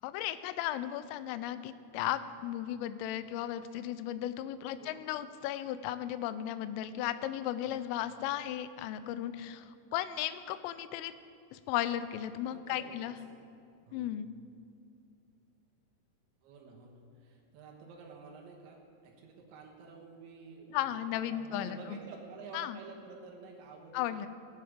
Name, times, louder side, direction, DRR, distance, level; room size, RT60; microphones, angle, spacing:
voice 1, 0.0-11.1 11.5-13.1 13.9-14.3 20.7-22.0 22.5-22.8 23.9-24.3, left 12 dB, 90° left, 13 dB, 3.2 m, -35 dB
voice 2, 7.6-8.0 12.5-13.3 13.9-14.2 16.4-24.3, right 4 dB, 75° right, 0 dB, 3.3 m, -51 dB
17.5 x 8.5 x 5.1 m, 2.5 s
omnidirectional pair, 5.7 m